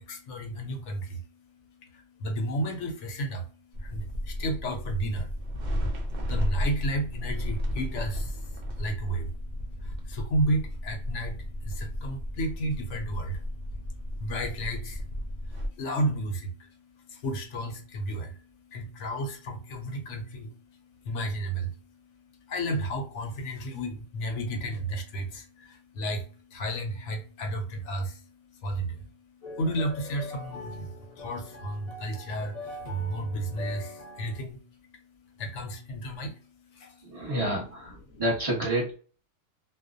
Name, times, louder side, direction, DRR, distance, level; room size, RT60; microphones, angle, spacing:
voice 1, 0.0-37.3 38.1-38.2, right 1 dB, 70° left, 4 dB, 0.9 m, -33 dB
sound 1, 3.7-15.7, equal, 65° right, 0.4 m, -33 dB
sound 2, 29.4-34.4, left 2 dB, 40° left, 0.6 m, -42 dB
voice 2, 37.0-39.0, right 1 dB, 30° right, -4 dB, 0.9 m, -29 dB
2.4 x 2.1 x 2.5 m, 0.40 s
omnidirectional pair, 1.4 m